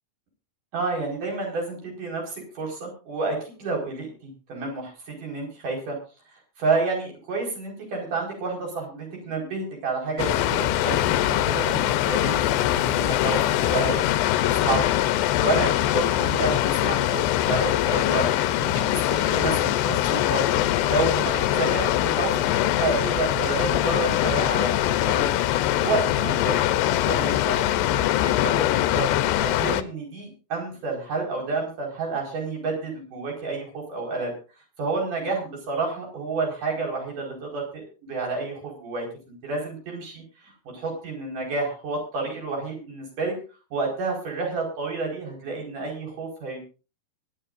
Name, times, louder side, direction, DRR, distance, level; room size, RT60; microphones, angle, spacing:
voice 1, 0.7-6.0 6.3-11.8 12.1-13.4 13.7-14.0 14.4-14.9 15.4-18.3 18.6-20.6 20.9-25.3 25.8-29.1 29.4-34.3 34.8-40.2 40.7-43.4 43.7-46.6, right 3 dB, 50° right, 0 dB, 6.2 m, -30 dB
Water, 10.2-29.8, left 13 dB, 85° left, 2.9 m, -23 dB
23.0 x 11.5 x 2.6 m, 0.34 s
omnidirectional pair, 4.7 m